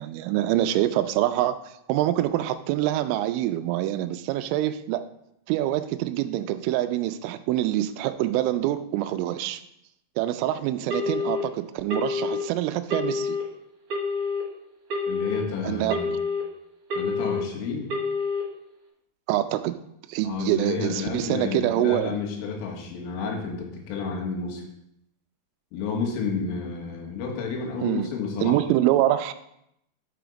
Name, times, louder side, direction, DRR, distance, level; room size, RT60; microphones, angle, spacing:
voice 1, 0.0-1.6 1.9-5.0 5.5-9.6 10.2-13.4 15.6-16.2 19.3-19.8 20.1-22.2 27.8-28.1 28.4-29.3, right 14 dB, 90° right, 11 dB, 3.1 m, -25 dB
Telephone, 10.9-11.4 11.9-12.4 12.9-13.4 13.9-14.4 14.9-15.4 15.9-16.4 16.9-17.4 17.9-18.4, left 4 dB, 50° right, 2.6 m, -27 dB
voice 2, 15.1-16.1 16.9-17.9 20.2-24.6 25.7-28.6, left 5 dB, 85° left, 1 dB, 3.8 m, -31 dB
6.3 x 5.9 x 5.1 m, 0.78 s
omnidirectional pair, 5.5 m